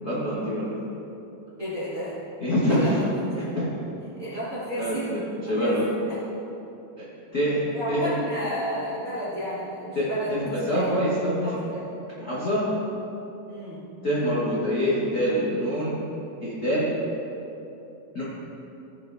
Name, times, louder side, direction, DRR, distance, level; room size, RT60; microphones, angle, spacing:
voice 1, 0.0-0.8 2.4-3.0 3.4-3.7 4.8-5.2 5.5-5.9 7.0-7.1 7.3-7.6 7.9-8.1 9.9-11.6 12.2-12.6 14.0-16.0 16.4-16.9 18.1-18.2, equal, 40° left, -10 dB, 1.4 m, -25 dB
voice 2, 1.6-2.1 2.7-3.5 4.2-5.2 5.4-5.8 6.1-6.2 7.7-10.3 10.7-10.9 11.4-11.8 13.5-13.9, equal, 25° right, -11 dB, 1.9 m, -32 dB
15.5 x 7.9 x 2.7 m, 2.9 s
omnidirectional pair, 4.5 m